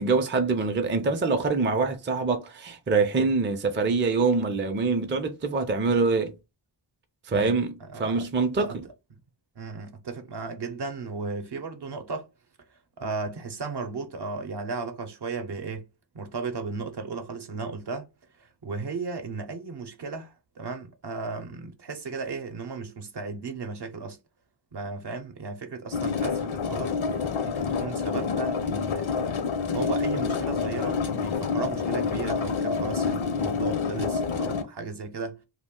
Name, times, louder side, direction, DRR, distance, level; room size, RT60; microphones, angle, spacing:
voice 1, 0.0-6.3 7.3-8.7, right 4 dB, 25° right, 0.5 m, -25 dB
voice 2, 7.3-8.3 8.6-8.8 9.6-12.3 12.7-15.9 16.1-18.1 18.4-24.2 24.7-26.9 27.4-29.1 29.7-35.4, right 4 dB, 55° right, 0.7 m, -35 dB
sound 1, 25.9-34.6, left 5 dB, 75° left, 0.6 m, -28 dB
2.3 x 2.1 x 3.6 m
cardioid pair, 50°, 48 cm